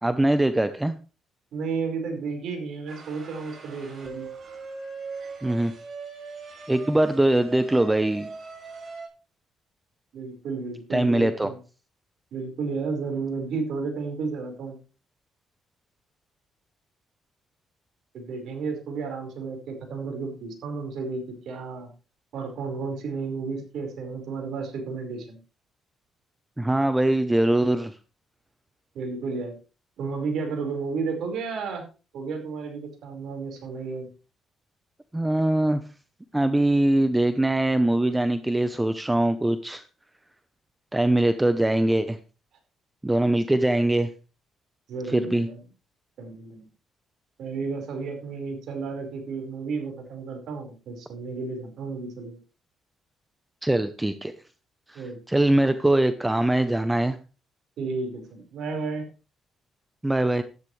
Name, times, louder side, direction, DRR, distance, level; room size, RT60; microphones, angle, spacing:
voice 1, 0.0-0.9 5.4-5.7 6.7-8.3 10.9-11.5 26.6-28.0 35.1-35.8 36.3-39.8 40.9-42.2 43.0-44.1 45.1-45.5 53.6-54.3 54.9-57.2 60.0-60.4, right 1 dB, 10° right, 11 dB, 0.8 m, -22 dB
voice 2, 1.5-4.3 10.1-11.6 12.3-14.8 18.1-21.9 22.3-25.4 28.9-29.5 30.0-31.8 32.1-34.1 44.9-45.6 46.2-46.7 47.4-52.4 54.9-55.7 57.8-59.1, right 4 dB, 75° right, 3 dB, 4.8 m, -32 dB
sound 1, 2.9-9.1, right 4 dB, 45° right, 6.2 m, -40 dB
13.5 x 11.5 x 3.3 m, 0.34 s
cardioid pair, 90°, 0 cm